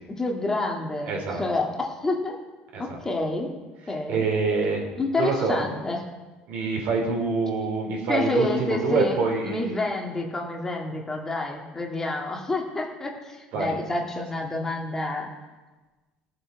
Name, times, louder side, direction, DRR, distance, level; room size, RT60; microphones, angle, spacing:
voice 1, 0.2-2.3 2.8-3.5 3.9-4.2 5.0-6.0 8.1-9.2 9.4-15.3, left 2 dB, 15° left, 0 dB, 1.9 m, -28 dB
voice 2, 1.1-1.4 2.7-3.0 4.1-4.9 5.2-5.6 6.5-9.8 13.5-13.7, right 4 dB, 65° right, -1 dB, 3.8 m, -26 dB
18.0 x 7.7 x 4.8 m, 1.2 s
cardioid pair, 130°, 3 cm